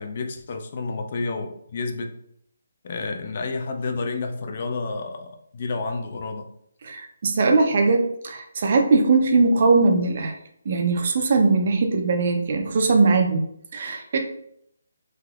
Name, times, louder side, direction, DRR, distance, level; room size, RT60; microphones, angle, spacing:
voice 1, 0.0-2.1 2.8-6.5, left 3 dB, 45° left, 5 dB, 0.4 m, -30 dB
voice 2, 6.8-10.3 10.7-13.5 13.7-14.2, right 3 dB, 45° right, 4 dB, 0.5 m, -20 dB
3.4 x 2.7 x 2.3 m, 0.71 s
hypercardioid pair, 160°, 0 cm